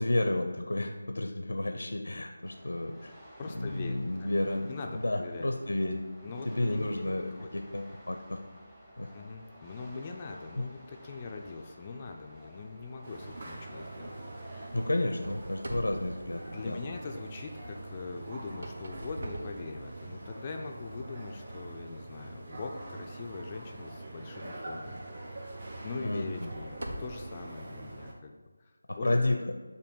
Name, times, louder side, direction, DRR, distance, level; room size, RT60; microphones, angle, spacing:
voice 1, 0.0-3.1 3.5-6.0 6.5-8.4 9.0-9.1 10.6-10.7 14.7-16.8 26.0-26.5 28.9-29.4, left 1 dB, 85° left, 5 dB, 0.5 m, -31 dB
sound 1, 2.4-15.0, equal, 5° right, 0.7 m, -53 dB
voice 2, 3.4-4.3 4.7-5.5 6.2-7.6 9.1-14.6 16.5-25.0 25.8-28.3 28.6-28.7 29.0-29.2, left 4 dB, 20° left, 3 dB, 0.3 m, -42 dB
sound 2, 13.0-28.1, right 2 dB, 40° right, 0.8 m, -44 dB
sound 3, 15.2-17.2 18.3-20.3 20.9-21.1 21.7-21.8 24.5-24.6 25.2-25.3 26.1-27.4, right 1 dB, 70° right, 0.9 m, -43 dB
6.9 x 2.6 x 5.2 m, 1.3 s
figure-of-eight pair, 170°, 0 cm